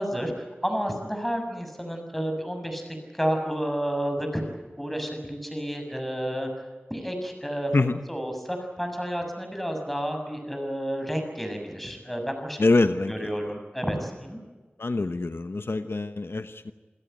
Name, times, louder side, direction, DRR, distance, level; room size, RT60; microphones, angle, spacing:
voice 1, 0.0-2.8 3.1-4.4 4.8-6.5 6.9-7.8 8.1-12.6 13.1-14.4, equal, 5° left, 4 dB, 6.8 m, -30 dB
voice 2, 12.6-13.1 14.8-16.7, left 3 dB, 75° left, 9 dB, 1.1 m, -24 dB
28.0 x 17.0 x 9.2 m, 1.3 s
wide cardioid pair, 60°, 4 cm